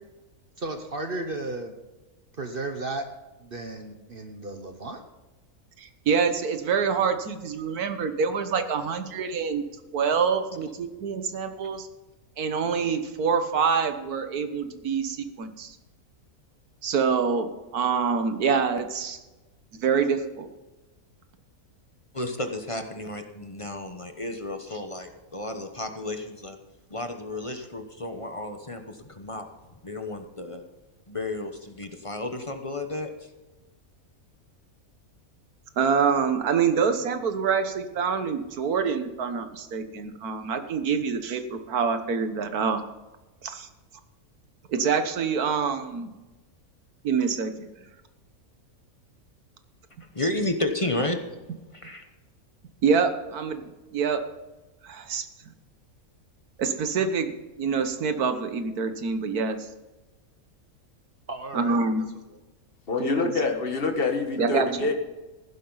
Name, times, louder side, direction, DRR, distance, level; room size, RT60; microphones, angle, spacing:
voice 1, 0.6-1.7 2.4-3.1 3.4-5.0 61.3-61.8 62.3-62.4, right 2 dB, 40° right, 6 dB, 1.1 m, -34 dB
voice 2, 5.8-9.6 9.9-11.9 12.4-15.8 16.8-19.2 19.7-20.5 35.8-42.8 43.4-43.7 44.7-46.1 47.0-47.7 52.8-54.2 54.8-55.3 56.6-59.6 61.5-62.0 63.0-63.3 64.4-64.7, right 6 dB, 85° right, 8 dB, 1.6 m, -26 dB
voice 3, 22.1-26.6 26.9-29.5 29.8-30.6 31.1-33.3 50.1-51.2 51.7-52.0, left 2 dB, 25° left, 5 dB, 0.9 m, -32 dB
voice 4, 62.9-64.9, left 3 dB, 40° left, 5 dB, 1.6 m, -26 dB
15.5 x 11.5 x 4.0 m, 1.1 s
omnidirectional pair, 1.5 m